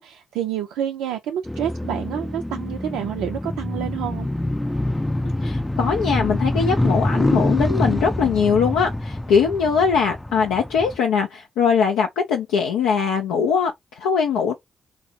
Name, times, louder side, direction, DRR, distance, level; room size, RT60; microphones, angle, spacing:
voice 1, 0.0-4.3, right 10 dB, 85° right, 0.3 m, -28 dB
sound 1, 1.5-11.0, left 1 dB, 10° left, 0.4 m, -25 dB
voice 2, 5.4-14.5, left 6 dB, 85° left, 0.4 m, -21 dB
3.9 x 2.0 x 2.7 m
hypercardioid pair, 40°, 0 cm